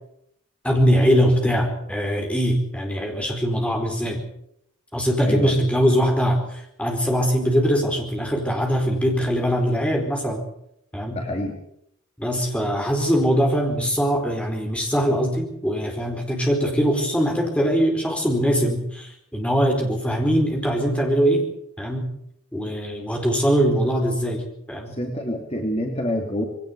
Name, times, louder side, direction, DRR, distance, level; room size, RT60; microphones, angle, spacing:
voice 1, 0.6-4.2 4.9-10.4 10.9-11.2 12.2-21.4 21.8-22.1 22.5-25.0, equal, 5° left, 2 dB, 4.4 m, -22 dB
voice 2, 5.2-5.5 11.1-11.6 23.8-23.9 24.9-26.4, left 1 dB, 30° left, 2 dB, 2.9 m, -27 dB
22.0 x 17.5 x 8.2 m, 0.74 s
head